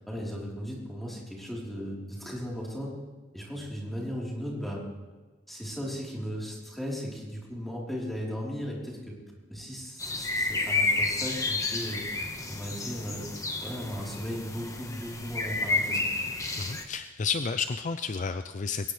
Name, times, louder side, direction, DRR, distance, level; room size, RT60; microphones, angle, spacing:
voice 1, 0.1-2.9 3.3-4.8 5.5-9.1 9.5-13.3 13.6-16.0, equal, ahead, -4 dB, 3.8 m, -36 dB
sound 1, 10.0-16.8, left 3 dB, 15° left, 1.3 m, -31 dB
voice 2, 16.6-18.9, left 5 dB, 40° left, 10 dB, 0.5 m, -31 dB
21.0 x 18.5 x 3.3 m, 1.3 s
head